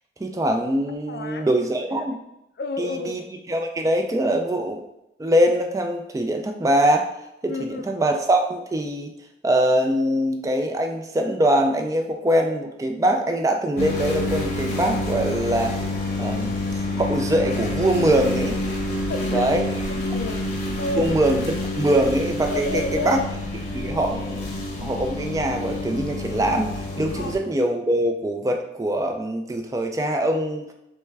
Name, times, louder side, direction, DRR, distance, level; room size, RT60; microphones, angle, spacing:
voice 1, 0.2-2.2 2.8-3.2 3.5-4.8 5.2-7.1 7.4-9.1 9.4-15.7 16.2-16.6 17.0-18.6 19.3-19.6 21.0-23.2 23.7-24.4 24.8-26.7 27.0-30.7, right 1 dB, 20° right, 3 dB, 0.3 m, -23 dB
voice 2, 1.1-2.1 2.6-3.2 7.5-7.9 19.0-21.2 22.5-23.3 27.1-27.3, left 3 dB, 60° left, 6 dB, 0.4 m, -31 dB
sound 1, 13.8-27.4, left 1 dB, 40° left, 0.8 m, -28 dB
3.3 x 3.2 x 3.3 m, 0.85 s
head